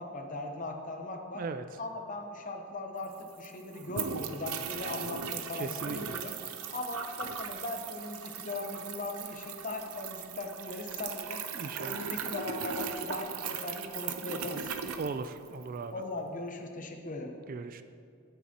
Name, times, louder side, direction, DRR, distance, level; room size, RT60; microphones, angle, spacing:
voice 1, 0.0-1.4 1.8-6.3 6.7-11.4 11.8-14.7 15.9-17.3, left 2 dB, 40° left, 3 dB, 0.9 m, -39 dB
voice 2, 1.3-1.6 5.0-5.1 5.5-6.2 11.5-12.0 15.0-15.9 17.5-17.8, right 4 dB, 40° right, 11 dB, 0.3 m, -38 dB
sound 1, 2.7-2.8 3.0-15.8, right 6 dB, 85° right, 0.6 m, -38 dB
16.5 x 6.9 x 2.9 m, 2.4 s
head